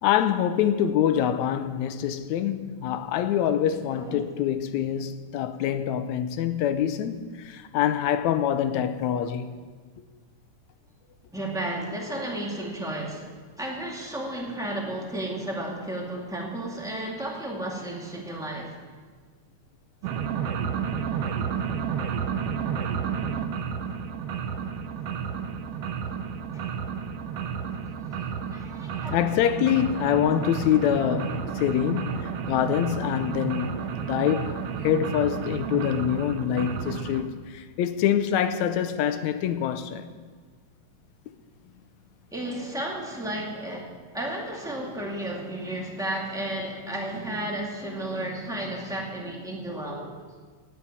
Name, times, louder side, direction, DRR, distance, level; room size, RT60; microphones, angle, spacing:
voice 1, 0.0-9.5 29.1-34.6 34.8-40.1, left 10 dB, 75° left, 1.8 m, -25 dB
voice 2, 3.9-4.3 11.3-18.7 24.4-24.5 26.5-26.6 27.3-27.5 27.8-28.1 28.5-29.2 42.3-50.1, right 1 dB, ahead, 1.6 m, -33 dB
sound 1, 20.0-37.3, right 7 dB, 70° right, 1.5 m, -31 dB
17.0 x 5.9 x 9.7 m
omnidirectional pair, 3.6 m